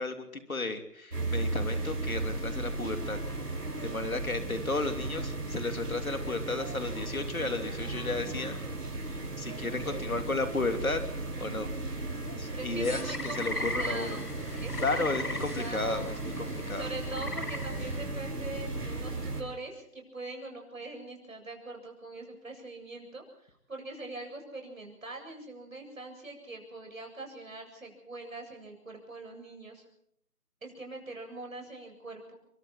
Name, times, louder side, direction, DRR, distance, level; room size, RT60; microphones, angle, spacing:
voice 1, 0.0-3.2 3.8-8.6 9.4-11.0 11.4-11.7 12.2-14.1 14.8-16.9, left 3 dB, 60° left, 7 dB, 3.2 m, -33 dB
sound 1, 1.1-19.4, right 2 dB, 70° right, 7.0 m, -36 dB
voice 2, 9.2-10.1 12.5-14.2 14.5-29.8 30.6-32.4, right 2 dB, 55° right, 3 dB, 7.9 m, -43 dB
sound 2, 12.8-18.0, left 2 dB, 80° left, 5.4 m, -38 dB
27.0 x 23.5 x 4.4 m, 0.70 s
figure-of-eight pair, 180°, 47 cm